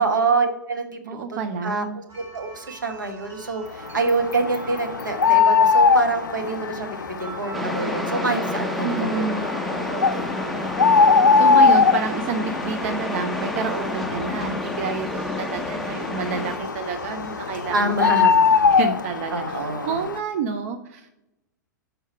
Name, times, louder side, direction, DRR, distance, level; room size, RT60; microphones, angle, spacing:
voice 1, 0.0-0.9 1.1-9.2 9.7-10.6 17.7-18.3 19.3-20.1, right 3 dB, 75° right, 4 dB, 1.1 m, -26 dB
voice 2, 1.0-2.0 8.8-9.5 11.4-18.3 18.7-21.1, right 6 dB, 45° right, 7 dB, 0.5 m, -29 dB
sound 1, 2.1-18.8, right 4 dB, 25° right, 2.1 m, -44 dB
sound 2, 3.9-20.2, left 5 dB, 75° left, 0.4 m, -22 dB
sound 3, 7.5-16.6, left 1 dB, ahead, 0.5 m, -30 dB
6.4 x 4.8 x 4.5 m, 0.87 s
figure-of-eight pair, 105°, 10 cm